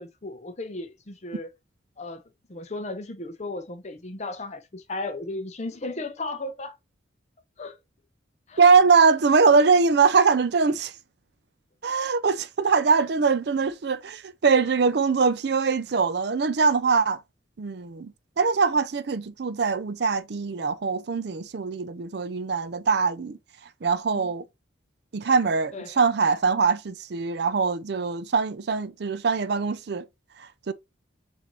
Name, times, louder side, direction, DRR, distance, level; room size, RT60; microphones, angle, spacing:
voice 1, 0.0-1.5 2.0-2.2 2.5-6.8 7.6-7.8 8.5-8.6 24.1-24.3 25.7-26.0, left 2 dB, 35° left, 0.7 m, -35 dB
voice 2, 8.6-10.9 11.8-17.2 17.6-23.4 23.8-24.4 25.1-30.0 30.7-30.8, right 5 dB, 55° right, 0.5 m, -22 dB
6.7 x 2.7 x 3.0 m
head